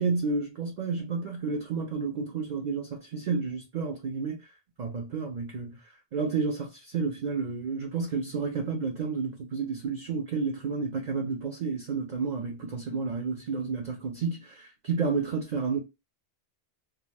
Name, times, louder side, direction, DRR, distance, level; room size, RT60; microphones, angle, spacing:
voice 1, 0.0-4.4 4.8-5.7 6.1-15.8, right 4 dB, 55° right, 0.5 m, -31 dB
2.3 x 2.3 x 3.2 m
omnidirectional pair, 1.2 m